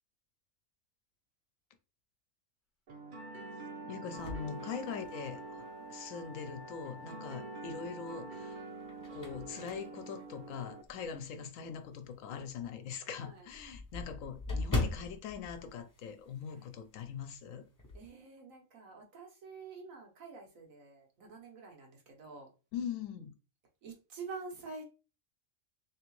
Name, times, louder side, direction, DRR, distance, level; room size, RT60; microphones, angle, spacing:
sound 1, 2.9-10.8, right 3 dB, 50° right, 0.7 m, -47 dB
Wind instrument woodwind instrument, 3.1-8.7, equal, 40° left, 0.9 m, -51 dB
voice 1, 3.8-5.6 5.9-8.6 9.1-17.6 22.7-23.3, left 7 dB, 75° left, 1.0 m, -42 dB
sound 2, 4.2-5.5 6.0-6.1 7.6-8.1 8.6-11.2 11.7-11.8 12.2-12.3 12.6-12.7 12.9-16.7 16.9-17.2 17.5-18.1, left 2 dB, 20° left, 0.6 m, -40 dB
voice 2, 5.6-6.0 7.0-7.2 9.8-9.9 13.2-13.5 16.6-16.7 17.9-22.5 23.8-24.8, right 4 dB, 85° right, 1.5 m, -48 dB
3.5 x 3.2 x 3.1 m
omnidirectional pair, 1.4 m